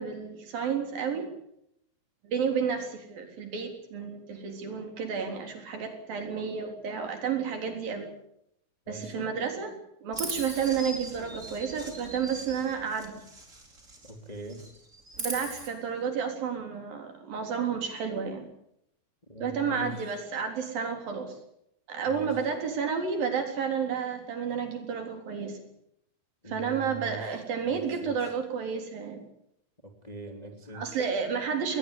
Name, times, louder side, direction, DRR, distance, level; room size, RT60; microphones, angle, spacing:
voice 1, 0.0-1.3 2.2-8.1 8.9-13.2 15.2-18.5 19.4-21.4 21.9-25.6 26.5-29.2 30.7-31.8, right 6 dB, 70° right, 4 dB, 5.4 m, -31 dB
voice 2, 8.9-9.3 14.0-14.7 19.3-20.2 22.0-22.4 26.4-27.3 27.7-28.2 29.8-31.0, right 1 dB, 10° left, 4 dB, 2.3 m, -42 dB
Chirp tweet, 10.1-14.2 14.4-15.7, right 2 dB, 20° right, 5.0 m, -40 dB
20.5 x 20.5 x 8.3 m, 0.75 s
omnidirectional pair, 4.2 m